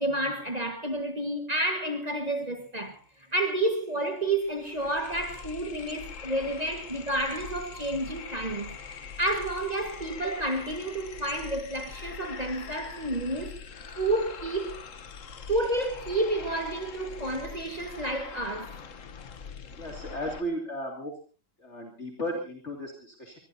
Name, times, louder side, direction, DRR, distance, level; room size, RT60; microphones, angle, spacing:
voice 1, 0.0-3.0 3.3-13.6 14.0-14.8 15.5-18.8, right 1 dB, 30° right, 1.8 m, -30 dB
sound 1, 3.4-3.5 3.7-20.4, left 6 dB, 85° left, 1.5 m, -43 dB
voice 2, 19.8-21.1 21.6-23.4, equal, 65° left, 3.1 m, -35 dB
24.5 x 20.0 x 2.8 m
omnidirectional pair, 1.3 m